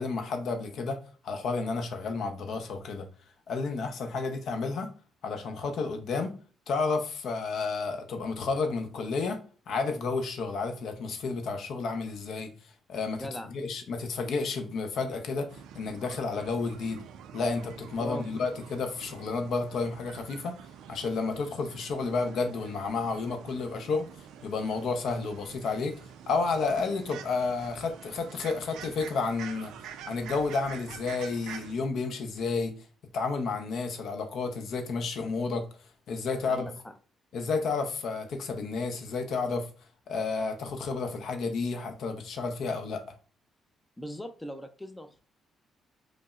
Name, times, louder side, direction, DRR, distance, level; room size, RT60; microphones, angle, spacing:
voice 1, 0.0-3.1 3.5-4.9 5.2-6.3 6.7-9.4 9.7-12.5 12.9-15.5 15.7-17.0 17.3-20.6 20.9-24.1 24.4-25.9 26.3-29.7 30.0-32.7 33.1-35.6 36.1-36.7 37.3-39.7 40.1-43.0, left 4 dB, 70° left, 0.6 m, -31 dB
voice 2, 13.1-13.5 18.0-18.3 36.5-36.7 44.0-45.2, left 1 dB, 10° left, 0.3 m, -39 dB
sound 1, 15.5-31.7, right 8 dB, 85° right, 0.3 m, -47 dB
5.1 x 2.0 x 2.3 m
cardioid pair, 90°, 0 cm